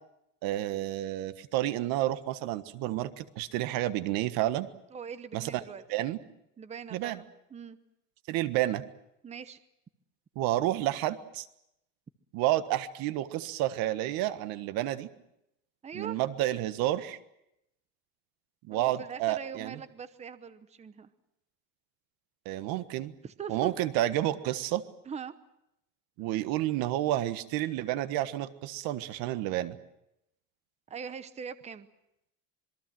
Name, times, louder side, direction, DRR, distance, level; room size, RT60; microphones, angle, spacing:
voice 1, 0.4-4.7 5.3-5.6 5.9-6.2 6.9-7.2 8.3-8.8 10.3-11.5 12.3-15.1 15.9-17.2 18.7-19.8 22.4-23.1 23.5-24.8 26.2-29.8, right 14 dB, 85° right, 12 dB, 1.5 m, -30 dB
voice 2, 4.9-5.8 6.6-7.3 7.5-7.8 9.2-9.6 15.8-16.2 18.7-21.1 23.2-23.7 25.1-25.3 30.9-31.9, right 6 dB, 20° right, 13 dB, 0.9 m, -41 dB
26.5 x 22.5 x 7.7 m, 0.83 s
cardioid pair, 165°, 35 cm